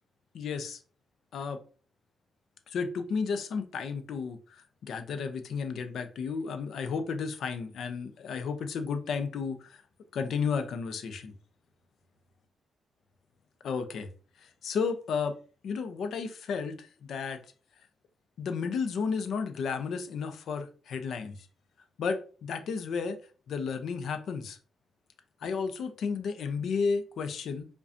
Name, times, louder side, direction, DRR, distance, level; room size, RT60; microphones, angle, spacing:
voice 1, 0.3-0.8 1.3-1.6 2.7-9.8 10.1-11.3 13.6-14.1 14.4-15.4 15.6-17.4 18.4-21.4 22.0-23.2 23.5-24.6 25.4-27.7, left 5 dB, 75° left, 0.5 m, -33 dB
4.8 x 2.3 x 2.6 m
cardioid pair, 70°, 0 cm